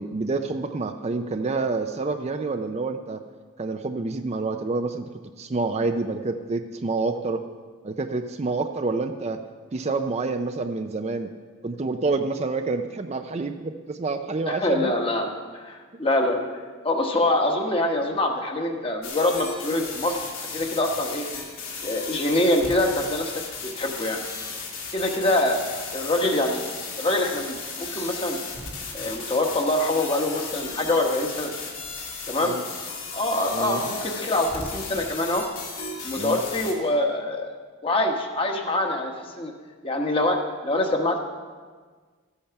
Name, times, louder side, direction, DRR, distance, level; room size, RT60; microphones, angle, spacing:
voice 1, 0.0-3.2 3.6-5.1 5.4-7.4 7.8-9.4 9.7-11.3 11.6-15.0 32.4-32.6 33.5-33.8 36.2-36.4, right 3 dB, 30° right, 7 dB, 0.4 m, -28 dB
voice 2, 14.5-16.4 16.8-20.2 20.5-21.3 21.8-23.3 23.6-24.2 24.9-25.6 25.9-26.7 27.0-28.4 28.9-31.5 32.3-32.6 33.1-35.4 36.0-37.5 37.8-39.5 39.8-41.2, left 1 dB, 25° left, 3 dB, 1.2 m, -24 dB
sound 1, 19.0-36.7, left 4 dB, 70° left, 2.4 m, -35 dB
13.5 x 8.6 x 5.8 m, 1.5 s
head